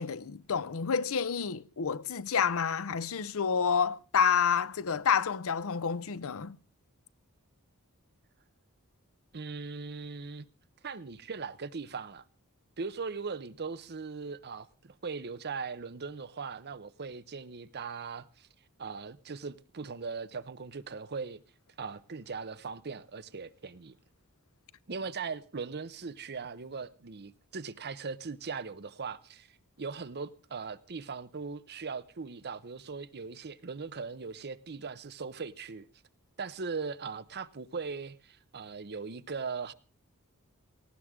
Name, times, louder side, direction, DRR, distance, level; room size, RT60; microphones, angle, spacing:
voice 1, 0.0-6.6, left 6 dB, 65° left, 0.7 m, -29 dB
voice 2, 9.3-10.5 10.8-12.2 12.8-18.5 18.8-21.4 21.8-24.0 24.9-29.5 29.8-35.9 36.4-39.7, right 5 dB, 50° right, 0.8 m, -39 dB
18.5 x 16.0 x 3.7 m
head